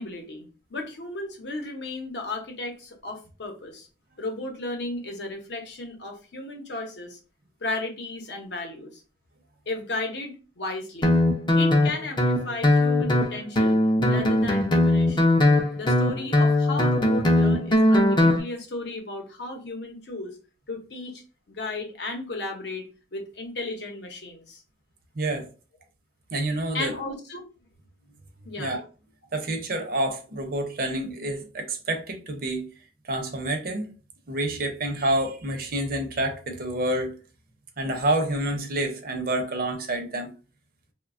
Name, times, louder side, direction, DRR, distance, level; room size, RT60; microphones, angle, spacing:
voice 1, 0.0-3.9 4.2-7.2 7.6-9.0 9.7-11.2 11.6-13.8 14.0-15.3 15.7-20.3 20.7-21.2 21.5-24.6 26.7-27.4 28.4-28.7, left 2 dB, 65° left, 0.7 m, -34 dB
Guitar, 11.0-18.4, left 1 dB, 25° left, 0.4 m, -20 dB
voice 2, 25.2-25.5 26.3-26.9 28.6-28.8 29.3-32.7 33.0-33.9 34.3-37.2 37.8-40.3, right 1 dB, 50° right, 0.6 m, -28 dB
3.0 x 2.2 x 2.4 m
head